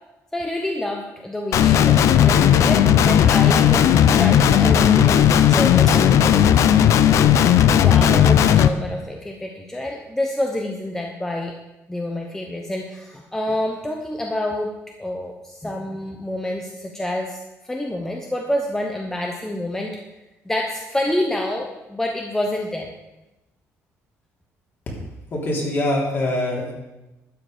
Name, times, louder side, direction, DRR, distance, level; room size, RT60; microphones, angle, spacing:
voice 1, 0.3-6.4 7.1-7.3 7.6-11.5 11.9-14.7 15.0-20.0 20.4-22.9, left 1 dB, 10° left, 1 dB, 0.8 m, -28 dB
Guitar, 1.5-8.7, left 9 dB, 60° left, 0.5 m, -15 dB
voice 2, 25.3-26.7, left 1 dB, 40° left, -2 dB, 3.1 m, -24 dB
12.0 x 7.8 x 5.1 m, 1.0 s
cardioid pair, 145°, 6 cm